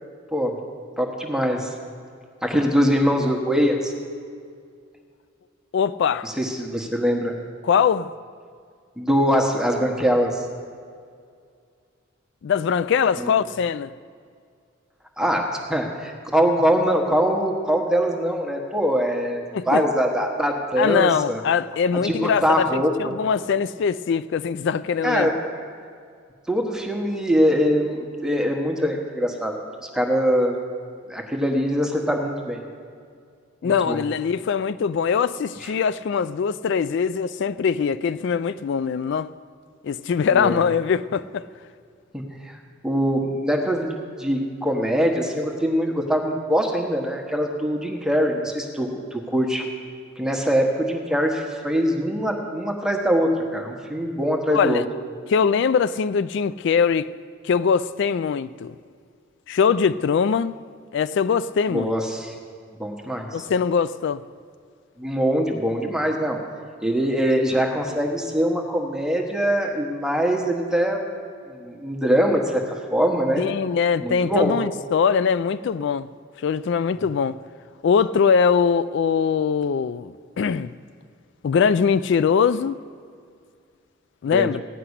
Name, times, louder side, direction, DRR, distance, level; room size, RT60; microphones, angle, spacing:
voice 1, 1.0-1.7 2.4-3.9 6.2-7.3 9.0-10.3 13.2-13.3 15.2-21.4 22.0-22.9 25.0-25.3 26.5-29.6 29.8-30.6 31.1-32.6 33.6-34.0 40.3-40.6 42.1-42.6 42.8-49.6 50.2-54.8 61.7-62.3 62.8-63.3 65.0-66.4 66.8-71.0 71.5-72.6 72.9-73.5 74.0-74.6 84.2-84.5, equal, 5° right, 1.3 m, -23 dB
voice 2, 5.7-6.3 7.6-8.1 12.4-13.9 19.5-19.8 20.8-25.3 33.6-39.3 39.8-41.5 54.5-54.8 55.3-57.1 57.4-58.7 59.5-60.6 60.9-61.9 63.3-64.2 73.4-76.1 76.4-77.3 77.8-80.7 81.4-82.8 84.2-84.6, left 6 dB, 60° left, 0.3 m, -22 dB
15.5 x 5.9 x 9.7 m
head